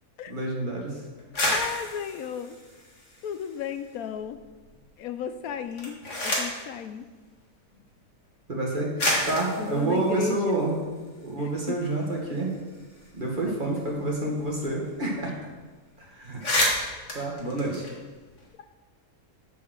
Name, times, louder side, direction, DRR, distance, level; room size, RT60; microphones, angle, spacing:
voice 1, 0.3-1.0 8.5-8.9 9.2-10.8 11.2-12.5 13.1-15.3 16.0-16.4 17.1-17.9, right 2 dB, 35° right, -2 dB, 2.0 m, -28 dB
sound 1, 1.2-3.8 4.1-4.8 5.6-6.7 7.7-7.8 8.6-8.7 9.0-11.3 11.7-11.8 12.0-14.6 14.9-15.0 15.3-15.6 15.9-16.0 16.2-18.5, left 1 dB, 55° left, 2.2 m, -31 dB
voice 2, 1.5-2.6 3.2-4.4 5.0-7.1 9.0-9.2 9.6-10.6 11.4-11.8 13.5-13.8 18.6-18.7, left 8 dB, 75° left, 10 dB, 1.0 m, -34 dB
7.7 x 7.3 x 6.3 m, 1.3 s
omnidirectional pair, 1.6 m